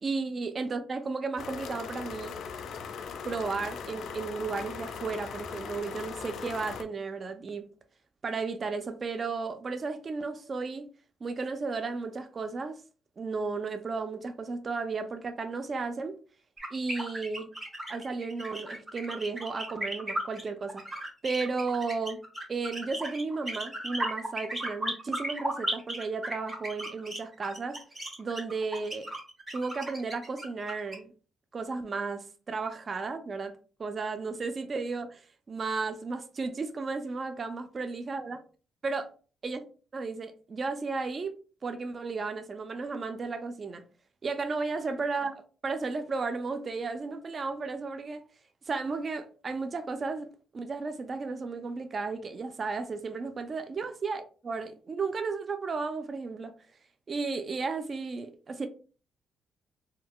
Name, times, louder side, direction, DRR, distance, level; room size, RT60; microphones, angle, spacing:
voice 1, 0.0-2.4 3.2-7.7 8.2-10.9 11.2-12.8 13.2-16.2 16.7-17.5 17.9-20.8 21.2-22.2 22.5-27.8 28.2-29.1 29.5-31.1 31.5-38.4 38.8-39.1 39.4-39.7 39.9-41.3 41.6-43.8 44.2-45.3 45.6-48.2 48.7-56.5 57.1-58.7, right 4 dB, 40° right, 0.3 m, -34 dB
sound 1, 1.4-6.8, left 6 dB, 70° left, 0.3 m, -39 dB
sound 2, 16.6-30.9, right 1 dB, 20° right, 1.1 m, -35 dB
3.7 x 2.2 x 2.3 m
cardioid pair, 105°, 0 cm